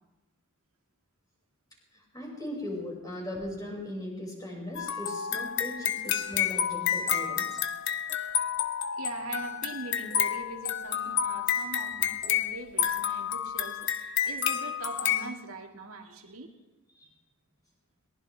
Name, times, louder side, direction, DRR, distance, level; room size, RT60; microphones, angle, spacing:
voice 1, 1.9-7.6 16.9-17.1, left 1 dB, 15° left, -2 dB, 5.5 m, -38 dB
sound 1, 4.8-15.3, left 9 dB, 55° left, 1.0 m, -30 dB
voice 2, 9.0-16.5, right 2 dB, 80° right, 4 dB, 2.0 m, -42 dB
22.5 x 19.5 x 3.3 m, 1.1 s
head